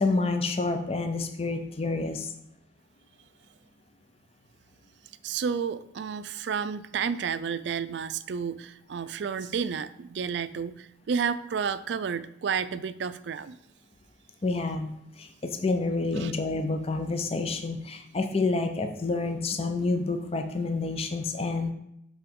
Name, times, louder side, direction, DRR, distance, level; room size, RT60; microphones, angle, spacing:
voice 1, 0.0-2.3 14.4-21.7, left 3 dB, 30° left, 6 dB, 0.5 m, -28 dB
voice 2, 5.2-13.6 16.2-16.3, right 6 dB, 65° right, 14 dB, 0.4 m, -31 dB
6.9 x 3.9 x 5.2 m, 0.77 s
head